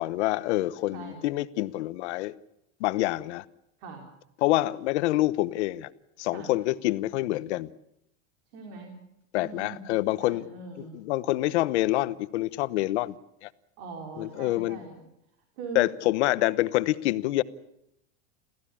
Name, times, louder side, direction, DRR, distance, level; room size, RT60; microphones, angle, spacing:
voice 1, 0.0-2.3 2.8-3.4 4.4-5.9 6.2-7.7 9.3-10.5 10.8-13.5 14.2-14.8 15.7-17.4, left 17 dB, 75° left, 1.1 m, -27 dB
voice 2, 8.5-9.0 9.4-9.9 10.2-11.0 13.8-15.0 15.6-15.8, right 4 dB, 55° right, 4.5 m, -41 dB
29.5 x 15.0 x 8.6 m
supercardioid pair, 175°, 35 cm